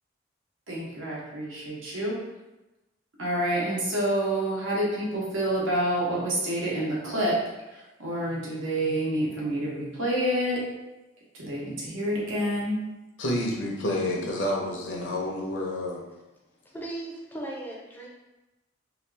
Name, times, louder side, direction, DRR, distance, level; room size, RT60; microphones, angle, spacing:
voice 1, 0.7-2.2 3.2-7.4 7.7-10.6 11.3-12.8, right 1 dB, 85° right, -5 dB, 1.0 m, -28 dB
voice 2, 13.2-16.0, left 1 dB, 75° left, -1 dB, 0.7 m, -29 dB
voice 3, 16.7-18.1, right 1 dB, 10° left, -3 dB, 0.5 m, -37 dB
2.8 x 2.4 x 3.3 m, 1.0 s
head